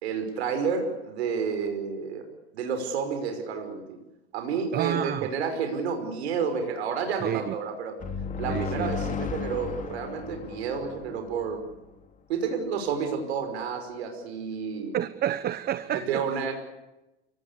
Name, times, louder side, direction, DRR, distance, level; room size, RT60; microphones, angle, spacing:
voice 1, 0.0-2.2 2.5-4.0 4.3-8.0 8.4-11.6 12.3-14.9 15.9-16.5, right 6 dB, 85° right, 6 dB, 5.5 m, -30 dB
voice 2, 4.7-5.3 7.2-7.6 8.5-8.9 14.9-16.5, right 11 dB, 30° right, 15 dB, 0.9 m, -30 dB
sound 1, 8.0-11.7, left 5 dB, 25° left, 2.6 m, -34 dB
29.5 x 18.5 x 8.4 m, 0.97 s
supercardioid pair, 125°, 31 cm